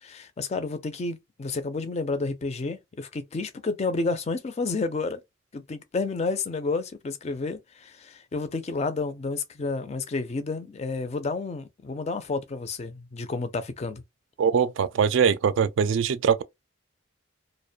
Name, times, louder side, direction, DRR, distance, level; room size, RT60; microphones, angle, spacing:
voice 1, 0.0-5.2 5.5-14.0, left 3 dB, 30° left, 0.4 m, -30 dB
voice 2, 14.4-16.4, right 7 dB, 65° right, 0.3 m, -22 dB
2.4 x 2.1 x 2.6 m
head